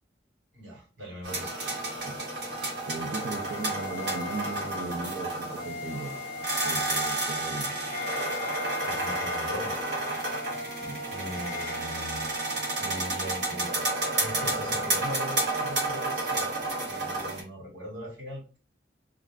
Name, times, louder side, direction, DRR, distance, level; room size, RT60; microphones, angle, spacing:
voice 1, 0.5-1.5 8.7-9.7 11.1-12.4 12.8-13.9 14.1-16.6 16.9-18.6, left 1 dB, 90° right, -2 dB, 1.4 m, -40 dB
sound 1, 1.2-17.4, right 2 dB, 70° right, 1.0 m, -31 dB
Wind instrument woodwind instrument, 1.8-11.8, left 5 dB, 35° left, 0.5 m, -40 dB
voice 2, 2.9-6.1 6.6-7.7 10.8-11.0, right 3 dB, 55° right, -2 dB, 0.5 m, -37 dB
sound 2, 10.1-16.7, right 3 dB, ahead, 0.7 m, -43 dB
2.4 x 2.0 x 3.4 m, 0.35 s
head